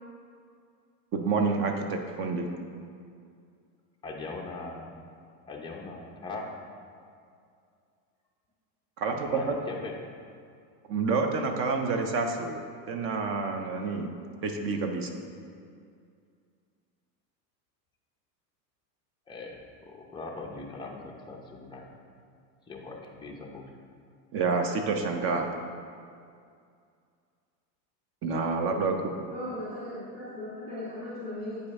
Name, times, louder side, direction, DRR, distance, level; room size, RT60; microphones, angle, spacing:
voice 1, 1.1-2.5 9.0-9.6 10.9-12.6 12.9-14.1 14.4-15.1 24.3-25.5 28.2-29.1, right 4 dB, 30° right, 4 dB, 0.4 m, -28 dB
voice 2, 4.0-4.9 5.5-6.5 9.2-9.9 19.3-21.8 22.7-23.6, left 3 dB, 10° left, -1 dB, 0.6 m, -40 dB
voice 3, 29.3-31.6, left 1 dB, 10° right, -10 dB, 1.6 m, -37 dB
8.3 x 5.1 x 3.5 m, 2.3 s
supercardioid pair, 135°, 50 cm